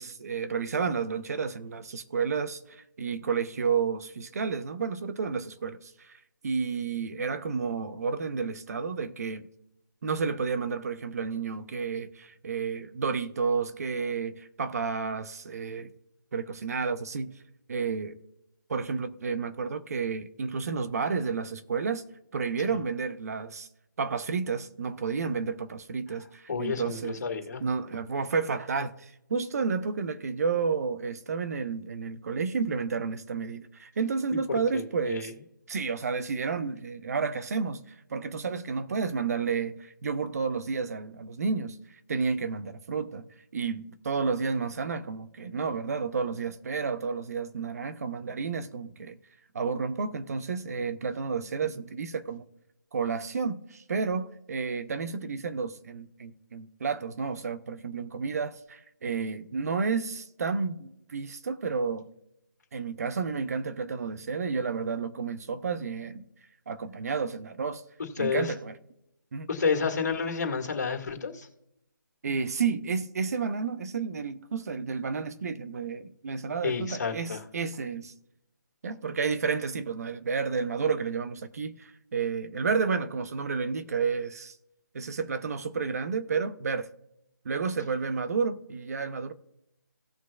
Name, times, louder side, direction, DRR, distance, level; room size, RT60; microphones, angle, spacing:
voice 1, 0.0-6.1 6.4-9.5 10.0-15.9 16.3-17.3 17.7-18.2 18.7-22.0 22.3-23.7 24.0-27.2 27.6-35.3 35.7-41.8 42.1-43.3 43.5-49.2 49.5-52.4 52.9-62.1 62.7-66.2 66.7-67.8 68.2-68.7 69.3-69.5 72.2-78.1 78.8-84.6 84.9-86.9 87.4-89.3, right 5 dB, 50° right, 0.8 m, -31 dB
voice 2, 26.5-27.6 34.7-35.3 68.2-68.5 69.5-71.5 76.6-77.4, left 5 dB, 55° left, 2.1 m, -30 dB
17.5 x 6.2 x 2.4 m
figure-of-eight pair, 155°, 11 cm